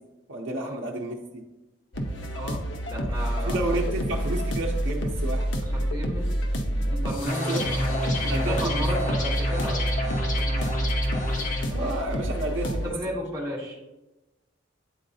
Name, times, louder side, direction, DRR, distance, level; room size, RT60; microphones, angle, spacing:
voice 1, 0.3-1.4 3.4-5.5 7.2-8.8 11.7-13.0, right 2 dB, 85° right, -2 dB, 0.6 m, -31 dB
sound 1, 1.9-12.9, equal, 75° left, 0.7 m, -28 dB
voice 2, 2.3-2.6 2.9-3.7 5.7-6.3 6.7-10.6 12.7-13.8, equal, 20° right, -3 dB, 1.2 m, -34 dB
sound 2, 7.3-11.6, left 2 dB, 45° left, 1.0 m, -30 dB
9.3 x 3.9 x 2.6 m, 1.0 s
head